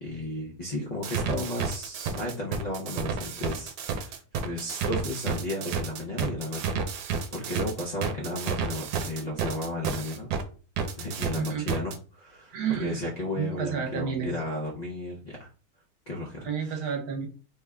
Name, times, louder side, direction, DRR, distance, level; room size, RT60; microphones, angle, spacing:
voice 1, 0.0-10.3 11.0-15.5 16.1-16.5, left 1 dB, 60° left, -2 dB, 0.4 m, -34 dB
sound 1, 1.0-10.4 10.8-12.0, right 6 dB, 90° right, 1.2 m, -31 dB
voice 2, 12.5-13.0 13.3-14.3 16.4-17.3, right 7 dB, 70° right, 3 dB, 1.2 m, -30 dB
3.2 x 2.2 x 3.5 m, 0.36 s
omnidirectional pair, 1.7 m